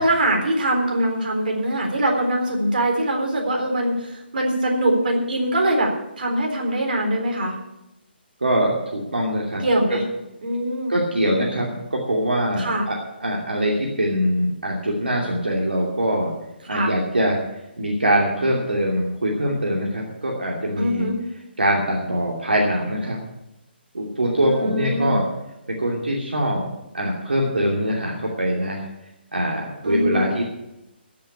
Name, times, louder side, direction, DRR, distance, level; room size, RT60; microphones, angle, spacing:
voice 1, 0.0-5.9 6.2-7.6 9.6-10.0 10.4-10.9 12.6-12.9 16.7-16.9 20.8-21.2 24.4-25.2 29.8-30.3, right 1 dB, 55° right, 1 dB, 3.8 m, -22 dB
voice 2, 8.4-9.7 10.9-16.3 16.7-17.4 17.8-21.0 21.6-23.2 23.9-25.2 25.7-26.7 26.9-28.8 29.3-30.4, equal, 70° right, -2 dB, 2.7 m, -23 dB
14.0 x 7.7 x 8.2 m, 0.91 s
figure-of-eight pair, 140°, 6 cm